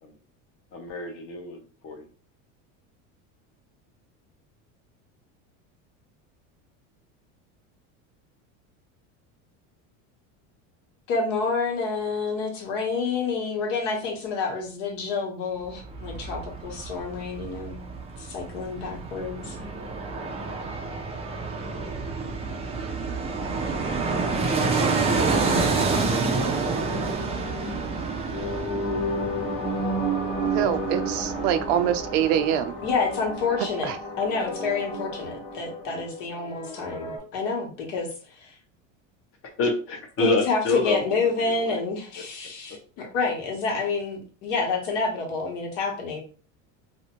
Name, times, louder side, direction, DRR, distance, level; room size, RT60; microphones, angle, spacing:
voice 1, 0.7-2.0 39.6-41.8, left 2 dB, 35° left, 4 dB, 0.8 m, -28 dB
voice 2, 11.1-17.8 18.2-19.6 32.8-38.1 38.3-38.5 40.2-46.2, left 4 dB, 75° left, 1 dB, 1.1 m, -28 dB
Fixed-wing aircraft airplane, 15.6-32.6 32.9-33.0, right 4 dB, 15° right, 0.4 m, -29 dB
sound 1, 19.4-37.2, right 1 dB, 60° left, 1.2 m, -34 dB
voice 3, 30.4-32.7 33.8-34.0, right 10 dB, 75° right, 10 dB, 0.5 m, -25 dB
2.6 x 2.1 x 2.9 m, 0.40 s
supercardioid pair, 120°, 37 cm